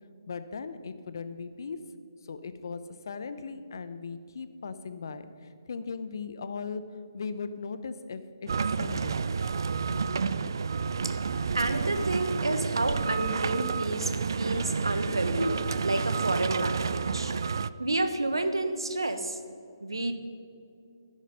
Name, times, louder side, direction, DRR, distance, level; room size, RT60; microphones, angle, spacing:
voice 1, 0.3-1.8 2.3-8.5 8.8-9.2, left 5 dB, 55° left, 12 dB, 0.8 m, -38 dB
sound 1, 8.5-17.7, right 5 dB, 60° right, 0.4 m, -30 dB
voice 2, 11.0-17.3 17.8-19.4 19.8-20.2, right 2 dB, 80° right, 9 dB, 1.2 m, -30 dB
12.5 x 10.5 x 5.4 m, 2.5 s
figure-of-eight pair, 140°, 2 cm